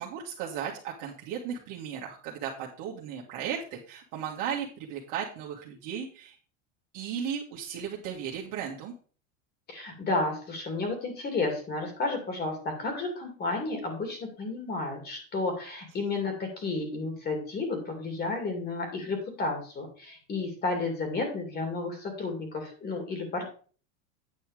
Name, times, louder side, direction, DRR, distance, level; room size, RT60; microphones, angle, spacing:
voice 1, 0.0-6.4 6.9-8.9, right 8 dB, 55° right, -2 dB, 1.9 m, -36 dB
voice 2, 9.7-23.5, left 3 dB, 25° left, 4 dB, 2.5 m, -32 dB
9.3 x 5.7 x 4.9 m, 0.40 s
supercardioid pair, 140°, 38 cm